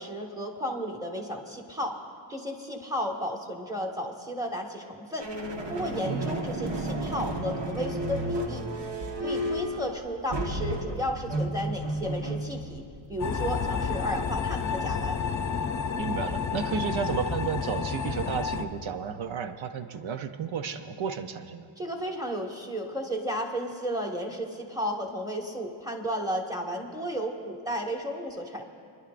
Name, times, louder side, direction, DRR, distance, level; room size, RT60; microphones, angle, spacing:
voice 1, 0.0-2.0 2.3-5.3 5.7-8.7 9.2-12.8 13.1-15.2 21.8-28.7, equal, 10° right, 0 dB, 1.6 m, -33 dB
sound 1, 5.2-15.3, right 1 dB, 65° right, 1.4 m, -33 dB
sound 2, 13.2-18.6, left 6 dB, 40° left, 0.6 m, -30 dB
voice 2, 16.0-21.7, right 6 dB, 85° right, 8 dB, 0.7 m, -32 dB
30.0 x 11.0 x 2.5 m, 2.4 s
cardioid pair, 80°, 46 cm